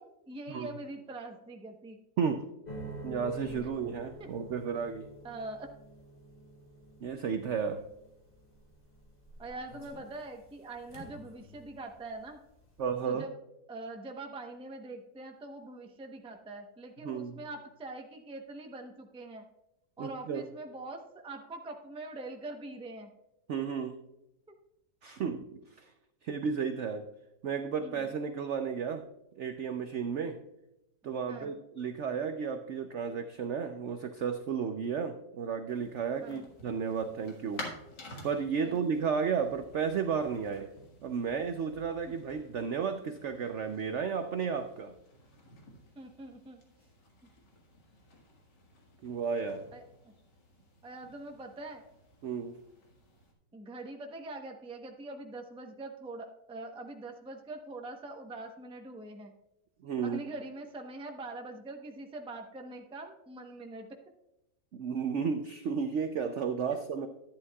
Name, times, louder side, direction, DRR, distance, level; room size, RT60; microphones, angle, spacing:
voice 1, 0.0-2.0 4.2-4.3 5.2-5.7 9.4-12.4 13.0-13.3 13.7-19.4 20.0-23.1 27.8-28.0 31.3-31.6 36.2-36.4 38.6-38.8 46.0-46.6 49.7-50.1 50.8-51.8 53.5-59.3 60.0-63.9, right 2 dB, 5° right, 3 dB, 0.4 m, -43 dB
sound 1, 2.6-11.9 12.2-12.8, right 1 dB, 30° left, 2.4 m, -48 dB
voice 2, 3.0-5.1 7.0-7.8 12.8-13.3 17.0-17.4 20.0-20.4 23.5-24.0 25.0-25.4 25.8-25.9 26.2-27.0 27.4-29.0 29.4-30.4 31.0-37.7 38.2-40.7 41.0-44.9 49.0-49.7 52.2-52.6 59.8-60.2 64.7-67.1, right 6 dB, 75° right, 7 dB, 0.6 m, -33 dB
sound 2, 35.7-53.3, left 2 dB, 75° left, 2.3 m, -52 dB
11.0 x 10.0 x 2.3 m, 0.89 s
omnidirectional pair, 1.9 m